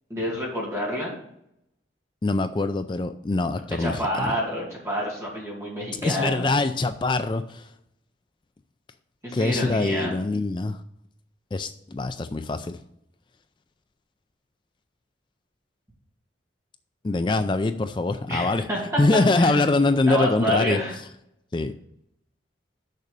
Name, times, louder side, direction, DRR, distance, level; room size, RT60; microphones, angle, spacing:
voice 1, 0.1-1.1 3.8-6.5 9.2-10.1 18.3-19.0 19.4-19.7 20.0-21.0, equal, 15° right, -4 dB, 2.3 m, -28 dB
voice 2, 2.2-4.3 6.0-7.7 9.3-10.8 11.5-12.8 17.0-18.7 19.0-20.8 21.5-21.7, left 2 dB, 25° left, 9 dB, 0.3 m, -24 dB
6.7 x 6.1 x 6.7 m, 0.76 s
head